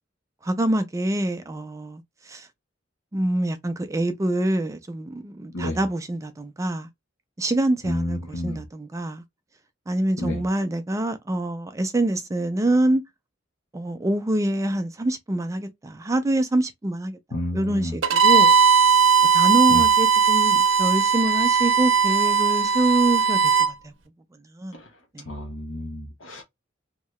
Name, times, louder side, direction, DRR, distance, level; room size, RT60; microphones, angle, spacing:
voice 1, 0.4-2.5 3.1-6.9 7.4-9.2 9.9-13.0 13.7-17.2 17.5-18.5 19.3-23.9 24.5-24.8 25.1-25.3, right 1 dB, 15° right, 0.3 m, -25 dB
voice 2, 7.8-8.6 10.2-10.4 17.3-18.0 19.7-19.8 24.7-24.9 25.3-26.4, left 1 dB, 80° left, 0.7 m, -30 dB
Bowed string instrument, 18.0-23.7, right 6 dB, 80° right, 0.6 m, -18 dB
2.7 x 2.2 x 2.9 m
head